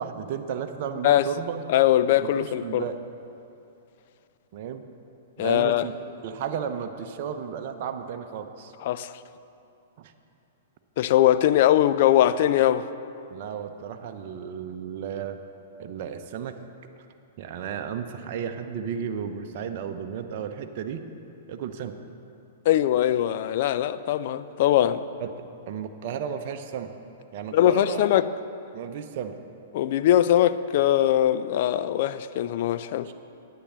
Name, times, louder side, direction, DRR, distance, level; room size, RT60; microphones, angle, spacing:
voice 1, 0.0-1.6 2.2-2.9 4.5-4.8 5.4-5.9 6.2-8.7 10.0-10.1 13.3-15.4 15.8-16.6 17.4-21.0 21.5-22.0 25.2-26.9 27.3-28.1 28.7-29.3 33.0-33.1, right 8 dB, 50° right, 0.7 m, -33 dB
voice 2, 1.7-2.8 5.4-5.9 8.8-9.2 11.0-12.8 22.7-25.0 27.5-28.3 29.7-33.1, left 12 dB, 55° left, 0.4 m, -21 dB
10.0 x 8.9 x 6.7 m
figure-of-eight pair, 110°, 0 cm